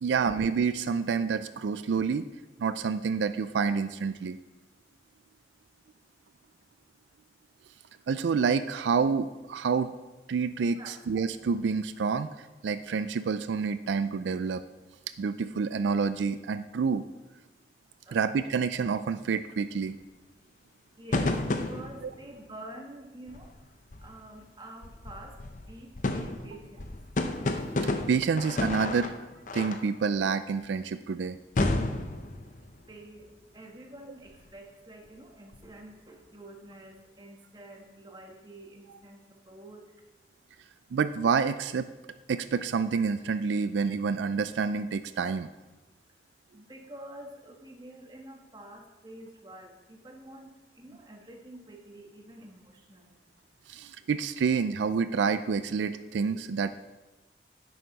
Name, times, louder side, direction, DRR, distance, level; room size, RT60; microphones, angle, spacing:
voice 1, 0.0-2.3 2.6-4.4 8.1-9.9 10.3-14.6 15.2-17.0 18.1-20.0 22.0-22.1 27.8-29.3 29.5-31.4 40.9-41.9 42.3-45.5 53.7-56.7, right 5 dB, 85° right, 12 dB, 0.4 m, -28 dB
voice 2, 18.0-18.4 21.0-23.7 24.0-27.0 32.9-39.9 46.5-53.1, right 1 dB, 25° right, 2 dB, 1.3 m, -48 dB
sound 1, 21.1-22.3 23.3-23.6 23.9-24.3 24.8-29.9 31.6-32.9 34.3-34.4 35.5-35.7, left 2 dB, 45° left, 0.7 m, -31 dB
10.5 x 7.9 x 4.0 m, 1.1 s
head